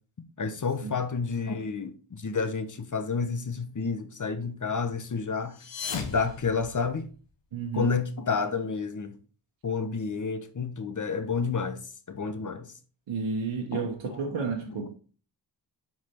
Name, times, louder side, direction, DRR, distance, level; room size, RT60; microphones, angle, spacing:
voice 1, 0.4-5.6 6.1-7.0 7.7-9.1 9.6-11.8 12.1-12.7 13.7-13.8 14.1-14.4 14.7-14.9, left 5 dB, 40° left, 1.1 m, -30 dB
sound 1, 5.4-7.3, left 6 dB, 60° left, 1.3 m, -37 dB
voice 2, 7.5-7.9 13.1-14.9, right 5 dB, 65° right, 1.2 m, -31 dB
5.9 x 4.8 x 4.5 m
supercardioid pair, 40°, 50 cm